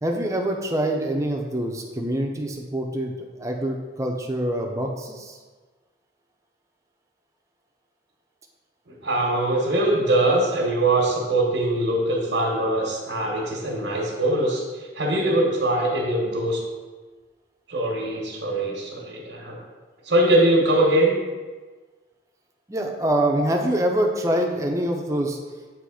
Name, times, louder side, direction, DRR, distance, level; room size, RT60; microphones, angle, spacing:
voice 1, 0.0-5.4 22.7-25.4, right 1 dB, 15° right, 2 dB, 0.6 m, -25 dB
voice 2, 8.9-16.6 17.7-19.6 20.0-21.1, right 1 dB, 90° right, -3 dB, 1.2 m, -22 dB
7.7 x 3.2 x 4.9 m, 1.4 s
head